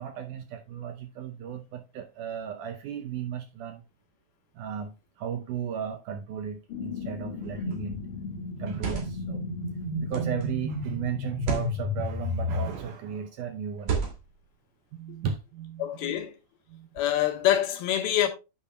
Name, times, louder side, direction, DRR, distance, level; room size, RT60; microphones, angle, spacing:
voice 1, 0.0-3.8 4.6-8.0 8.6-9.5 10.0-14.0 14.9-16.2 16.7-16.9, right 8 dB, 75° right, 1.9 m, -35 dB
sound 1, 6.7-12.7, left 2 dB, 55° left, 1.6 m, -33 dB
sound 2, 7.4-7.7 8.6-9.3 10.1-10.5 11.3-11.7 12.6-13.0 13.8-14.4, right 6 dB, 50° right, 3.4 m, -33 dB
voice 2, 15.8-16.3 17.0-18.3, left 12 dB, 80° left, 3.1 m, -25 dB
9.9 x 8.8 x 2.2 m
omnidirectional pair, 4.4 m